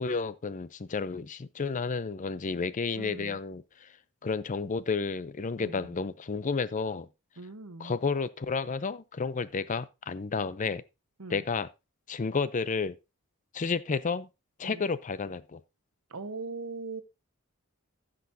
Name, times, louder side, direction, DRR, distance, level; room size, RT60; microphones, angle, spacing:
voice 1, 0.0-3.9 4.2-7.1 7.8-10.8 11.3-11.7 12.1-13.0 13.5-14.3 14.6-15.6, left 4 dB, 35° left, 0.5 m, -31 dB
voice 2, 2.9-3.4 5.6-5.9 7.4-8.0 11.2-11.4 14.6-14.9 16.1-17.0, right 3 dB, 80° right, 1.1 m, -40 dB
15.0 x 6.2 x 2.7 m
head